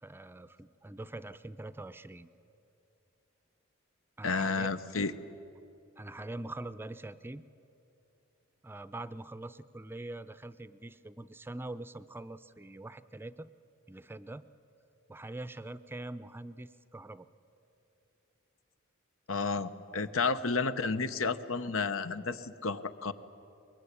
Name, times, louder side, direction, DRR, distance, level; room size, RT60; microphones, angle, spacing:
voice 1, 0.0-2.3 4.2-4.7 6.0-7.4 8.6-13.5 13.9-14.4 15.1-17.3, right 2 dB, 10° right, 14 dB, 0.5 m, -43 dB
voice 2, 4.2-5.1 19.3-23.1, left 4 dB, 85° left, 12 dB, 1.0 m, -31 dB
23.5 x 21.0 x 9.9 m, 2.8 s
head